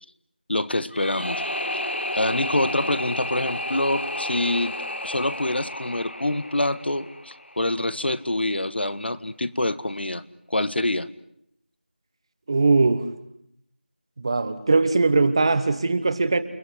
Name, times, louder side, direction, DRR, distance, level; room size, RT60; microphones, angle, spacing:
voice 1, 0.5-1.4 1.7-1.8 2.1-4.8 5.0-11.1, left 1 dB, 70° left, 15 dB, 1.7 m, -26 dB
sound 1, 0.9-7.9, left 1 dB, 90° left, 2.2 m, -31 dB
voice 2, 12.5-13.0 14.2-16.4, right 3 dB, 30° right, 10 dB, 1.3 m, -20 dB
29.5 x 20.0 x 9.8 m, 0.75 s
figure-of-eight pair, 170°, 6 cm